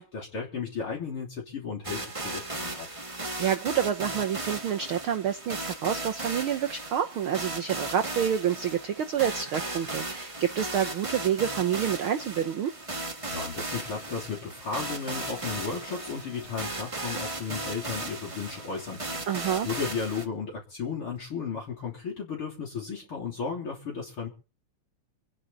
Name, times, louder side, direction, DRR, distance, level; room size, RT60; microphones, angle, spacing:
voice 1, 0.0-2.9 13.3-24.3, left 5 dB, 45° left, -3 dB, 4.0 m, -34 dB
sound 1, 1.8-20.3, right 2 dB, 50° right, 0.4 m, -36 dB
voice 2, 3.4-12.7 19.3-19.7, right 9 dB, 75° right, 6 dB, 1.2 m, -28 dB
26.0 x 10.0 x 4.1 m, 0.36 s
omnidirectional pair, 3.6 m